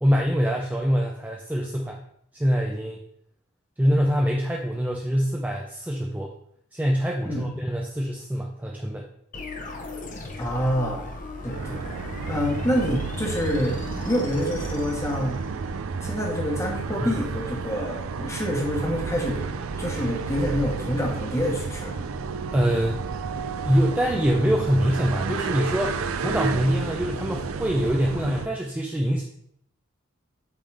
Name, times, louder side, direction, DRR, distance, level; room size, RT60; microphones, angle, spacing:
voice 1, 0.0-2.0 2.3-3.0 3.8-6.3 6.7-9.1 11.7-11.8 17.0-17.1 22.5-23.0 23.6-29.2, equal, 10° right, 0 dB, 0.4 m, -24 dB
sound 1, 9.3-15.8, left 2 dB, 40° left, 0.8 m, -38 dB
voice 2, 10.4-11.1 11.4-11.8 12.3-15.5 16.0-19.4 19.8-22.0, equal, 15° left, 0 dB, 1.2 m, -27 dB
sound 2, 11.5-28.5, right 5 dB, 75° right, 0.4 m, -31 dB
8.4 x 3.8 x 3.3 m, 0.70 s
head